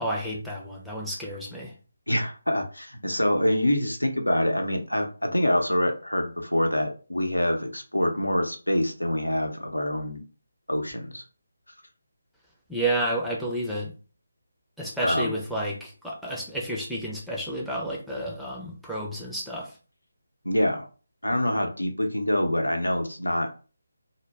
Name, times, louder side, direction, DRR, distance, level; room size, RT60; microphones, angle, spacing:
voice 1, 0.0-1.7 12.7-13.9 14.8-19.7, right 1 dB, ahead, -5 dB, 0.5 m, -31 dB
voice 2, 2.1-10.2 10.7-11.2 15.0-15.3 20.4-20.9 21.2-23.5, left 1 dB, 85° left, 4 dB, 0.7 m, -25 dB
2.1 x 2.0 x 3.3 m, 0.37 s
figure-of-eight pair, 155°, 0 cm